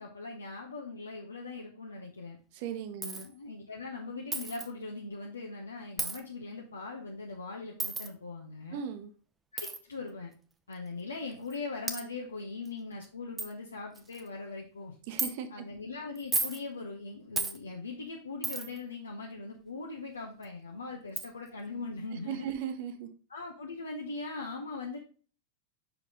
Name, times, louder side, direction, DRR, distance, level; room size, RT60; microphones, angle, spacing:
voice 1, 0.0-2.4 3.0-8.8 9.5-10.3 10.7-14.9 15.5-22.5 23.3-25.0, left 3 dB, 75° left, -1 dB, 0.9 m, -40 dB
voice 2, 2.5-3.2 8.7-9.1 15.1-15.5 22.1-23.1, right 8 dB, 50° right, 9 dB, 0.9 m, -37 dB
Coin (dropping), 3.0-3.3 4.3-4.7 6.0-6.2 7.8-8.1 9.6-9.8 10.7-10.8 11.5-11.6 11.9-12.0 12.7-12.8 13.0-13.1 13.4-13.5 14.0-14.3 15.2-15.3 16.2-16.6 17.4-17.6 18.4-18.8 20.4-20.5 21.2-21.3, right 3 dB, 15° right, 0.7 m, -33 dB
6.0 x 4.7 x 3.7 m, 0.40 s
figure-of-eight pair, 90°, 0 cm